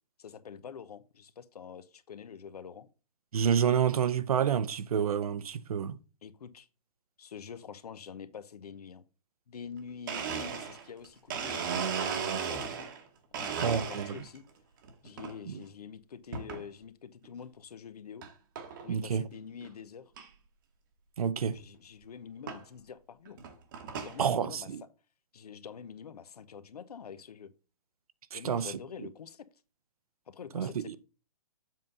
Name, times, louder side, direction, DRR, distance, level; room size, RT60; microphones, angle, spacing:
voice 1, 0.2-2.9 6.2-6.7 7.2-9.0 9.5-12.9 13.3-14.4 15.0-18.2 18.8-20.0 21.5-23.4 23.8-24.7 25.3-27.5 28.3-29.4 30.3-31.0, left 7 dB, 75° left, 0.9 m, -46 dB
voice 2, 3.3-6.0 13.6-14.1 15.5-15.6 18.9-19.2 21.2-21.6 24.2-24.8 28.3-28.7 30.5-31.0, right 8 dB, 70° right, 0.7 m, -29 dB
Domestic sounds home sounds, 9.7-9.8 10.1-13.0 13.3-14.4 14.8-15.3 16.3-16.6 17.2-17.3 18.2-18.3 18.6-18.9 19.3-19.4 19.6-19.7 20.2-20.3 21.6-21.7 22.5-22.6 23.3-24.2, right 6 dB, 30° right, 1.0 m, -35 dB
7.6 x 3.8 x 5.4 m
hypercardioid pair, 165°, 20 cm